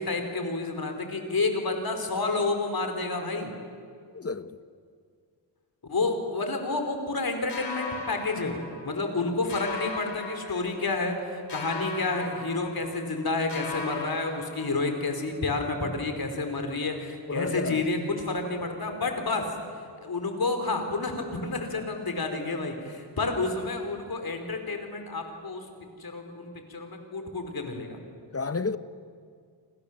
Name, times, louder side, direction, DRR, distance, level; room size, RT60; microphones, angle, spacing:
voice 1, 0.0-3.5 5.9-19.5 20.0-25.7 26.0-28.0, left 3 dB, 55° left, 4.8 m, -30 dB
voice 2, 4.1-4.6 17.3-17.9 28.3-28.8, left 4 dB, 35° left, 1.2 m, -31 dB
sound 1, 7.5-9.2 9.5-11.1 11.5-13.2 13.5-15.2, left 4 dB, 70° left, 3.8 m, -39 dB
29.5 x 26.0 x 7.7 m
cardioid pair, 60°, 43 cm